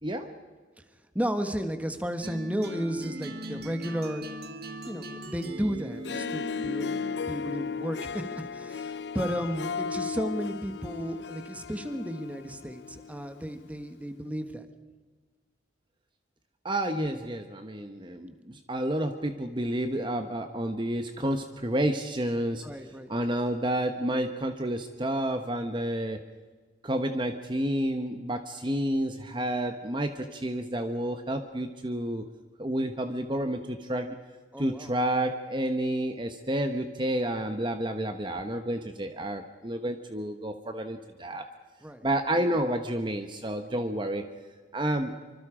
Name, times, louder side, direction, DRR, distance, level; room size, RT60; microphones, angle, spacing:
voice 1, 0.0-0.3 16.6-22.7 23.1-26.2 26.8-32.3 32.6-34.1 34.6-41.5 42.0-44.2 44.7-45.2, right 1 dB, 25° right, 7 dB, 1.0 m, -30 dB
voice 2, 1.1-4.3 4.8-14.7 17.0-17.2 22.6-23.1 34.5-34.9 41.8-42.0, equal, 10° right, 8 dB, 1.4 m, -33 dB
sound 1, 2.2-7.3, right 1 dB, 55° right, 1.9 m, -40 dB
Harp, 5.9-13.3, left 5 dB, 65° left, 0.6 m, -35 dB
25.5 x 25.0 x 5.0 m, 1.4 s
head